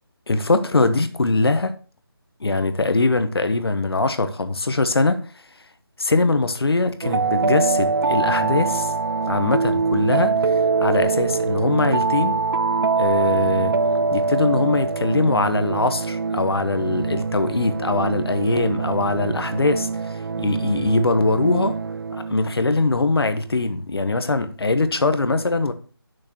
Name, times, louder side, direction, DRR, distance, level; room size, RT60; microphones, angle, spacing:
voice 1, 0.3-1.7 2.4-5.2 6.0-8.9 9.3-12.4 12.9-13.7 14.1-21.8 22.1-25.7, left 3 dB, 75° left, 1.1 m, -22 dB
sound 1, 7.0-22.7, right 4 dB, 60° right, 0.4 m, -23 dB
8.7 x 6.4 x 3.0 m
figure-of-eight pair, 175°, 13 cm